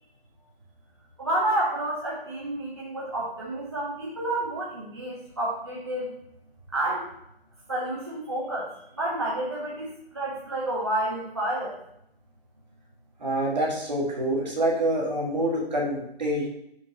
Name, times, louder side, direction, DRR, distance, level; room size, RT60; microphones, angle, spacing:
voice 1, 1.2-6.1 6.7-7.1 7.7-11.8, right 1 dB, 25° right, -5 dB, 0.8 m, -30 dB
voice 2, 13.2-16.5, right 1 dB, 45° right, -3 dB, 1.9 m, -26 dB
5.2 x 4.6 x 4.0 m, 0.75 s
figure-of-eight pair, 160°, 31 cm